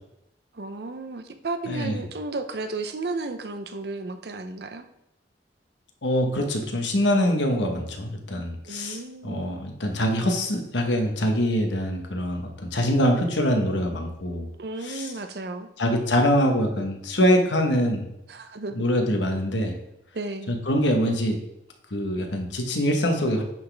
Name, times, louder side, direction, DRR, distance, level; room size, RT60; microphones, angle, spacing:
voice 1, 0.5-4.9 8.6-9.4 14.6-15.7 18.3-18.8 20.1-20.5, right 3 dB, 60° right, 9 dB, 0.6 m, -33 dB
voice 2, 1.7-2.0 6.0-14.5 14.9-15.1 15.8-18.1 18.7-19.7 20.5-21.4 21.9-23.4, equal, 80° left, 3 dB, 1.1 m, -24 dB
10.5 x 4.1 x 3.4 m, 0.84 s
head